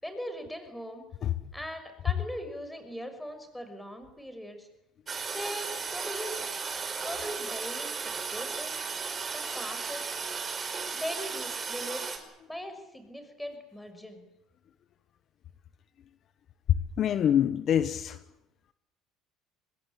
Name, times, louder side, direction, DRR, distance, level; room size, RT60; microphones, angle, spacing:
voice 1, 0.0-1.0 1.5-4.7 5.3-6.4 7.0-8.7 9.3-10.1 10.9-12.2 12.5-14.2, equal, 5° left, 8 dB, 6.3 m, -40 dB
Toilet flush, 5.1-12.2, right 5 dB, 30° right, 5.0 m, -35 dB
voice 2, 17.0-18.2, left 9 dB, 50° left, 12 dB, 1.2 m, -25 dB
25.0 x 20.5 x 8.9 m, 0.87 s
supercardioid pair, 100°, 0 cm